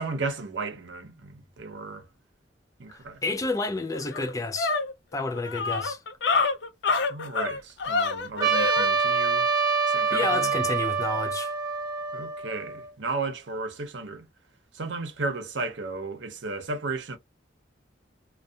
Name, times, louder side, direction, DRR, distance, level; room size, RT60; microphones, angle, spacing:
voice 1, 0.0-2.1 2.8-3.2 7.1-9.5 9.9-10.5 12.1-14.3 14.7-17.2, right 3 dB, 75° right, 0.7 m, -34 dB
voice 2, 2.9-4.8 5.1-6.0 10.1-11.5, left 3 dB, 20° left, 0.3 m, -30 dB
sound 1, 3.4-3.5 3.9-8.9, left 4 dB, 70° left, 0.5 m, -27 dB
Trumpet, 8.4-12.9, right 5 dB, 20° right, 0.7 m, -26 dB
2.6 x 2.3 x 2.3 m
head